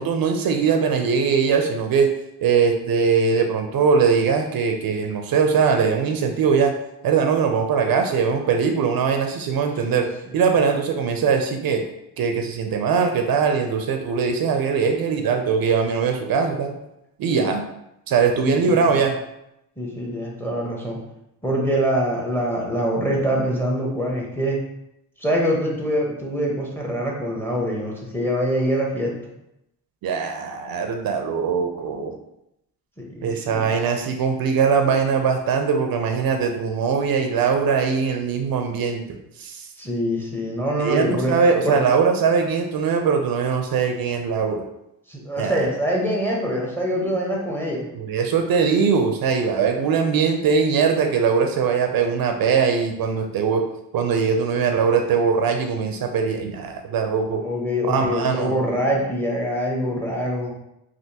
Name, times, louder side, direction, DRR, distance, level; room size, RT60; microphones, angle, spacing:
voice 1, 0.0-2.1 2.4-6.7 7.0-10.1 10.3-11.8 12.2-16.7 17.2-17.6 18.1-19.2 30.0-32.1 33.2-39.0 39.4-39.7 40.8-44.6 45.4-45.6 47.9-53.6 53.9-57.4 57.8-58.5, right 6 dB, 65° right, 4 dB, 0.5 m, -21 dB
voice 2, 18.4-19.0 19.8-21.0 21.4-24.6 25.2-29.1 33.0-33.7 39.8-41.3 41.6-41.8 45.1-47.9 57.4-60.5, equal, 5° left, -2 dB, 0.8 m, -24 dB
3.4 x 2.5 x 2.8 m, 0.84 s
cardioid pair, 85°, 39 cm